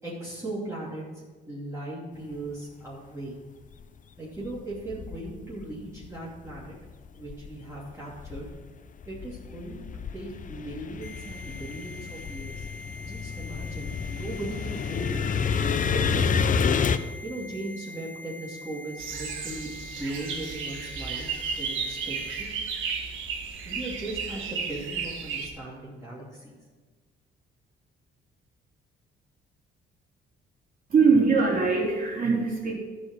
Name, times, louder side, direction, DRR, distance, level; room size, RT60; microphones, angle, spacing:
voice 1, 0.0-3.4 4.2-6.7 7.1-8.5 9.1-9.8 10.1-12.7 13.0-15.3 15.9-16.6 17.2-22.5 23.6-26.6, right 2 dB, 15° right, -8 dB, 2.9 m, -38 dB
sound 1, 3.7-3.8 4.4-6.1 6.5-7.7 8.1-17.0, left 6 dB, 40° left, 0.6 m, -29 dB
sound 2, 11.0-22.4, left 1 dB, 90° left, 2.2 m, -44 dB
sound 3, 19.0-25.5, right 6 dB, 80° right, 1.6 m, -33 dB
voice 2, 30.9-32.7, right 4 dB, 45° right, -4 dB, 3.9 m, -22 dB
13.0 x 5.1 x 6.3 m, 1.4 s
cardioid pair, 90°, 20 cm